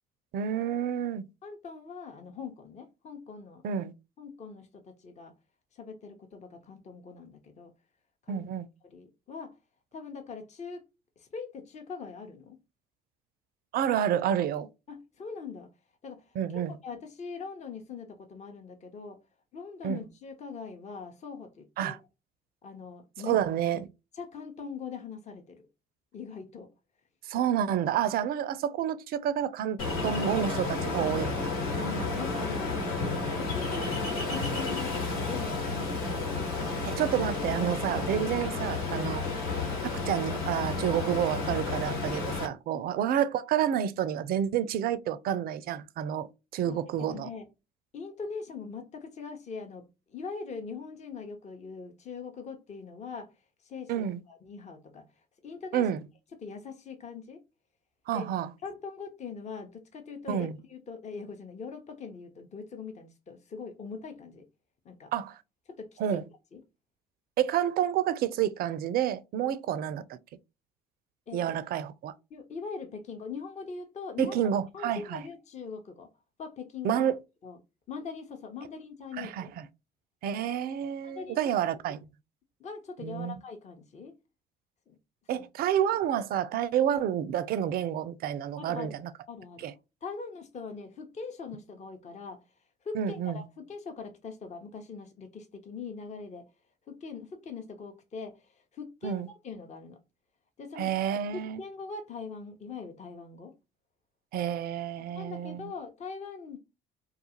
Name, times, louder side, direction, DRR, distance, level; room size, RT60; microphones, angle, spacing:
voice 1, 0.3-1.2 3.6-3.9 8.3-8.7 13.7-14.7 16.4-16.7 19.8-20.0 21.8-22.0 23.2-23.9 27.3-31.5 36.9-39.3 39.8-46.3 46.5-47.3 53.9-54.2 55.7-56.0 58.1-58.5 60.3-60.6 65.1-65.4 66.0-66.2 67.4-70.2 71.3-72.1 74.2-75.2 76.8-77.1 79.2-79.6 80.2-82.1 83.0-83.4 85.3-89.1 89.6-89.7 92.9-93.4 99.0-99.3 100.8-101.6 104.3-105.7, right 9 dB, 50° right, 0.4 m, -29 dB
voice 2, 1.4-3.6 4.2-5.3 5.7-7.7 8.2-8.4 8.8-9.6 9.9-10.9 11.2-12.6 14.9-15.7 16.0-19.2 19.5-22.0 22.6-23.4 24.1-25.6 26.1-26.7 31.8-32.8 33.4-37.0 42.7-42.8 46.7-47.5 47.9-53.3 53.6-55.0 55.4-55.9 56.4-57.4 58.1-58.3 58.6-64.5 64.8-65.1 65.7-66.2 66.5-66.6 69.4-69.5 71.3-71.4 72.3-74.4 74.7-76.1 76.4-77.0 77.4-77.6 77.9-79.5 81.0-81.5 82.6-84.1 84.9-85.0 85.3-85.4 88.6-89.7 90.0-92.4 92.8-96.5 96.9-100.0 100.6-100.9 101.3-103.5 105.0-106.6, left 5 dB, 35° left, 0.7 m, -42 dB
Ocean, 29.8-42.4, left 3 dB, 85° left, 1.4 m, -31 dB
2.4 x 2.3 x 2.8 m
hypercardioid pair, 60°, 20 cm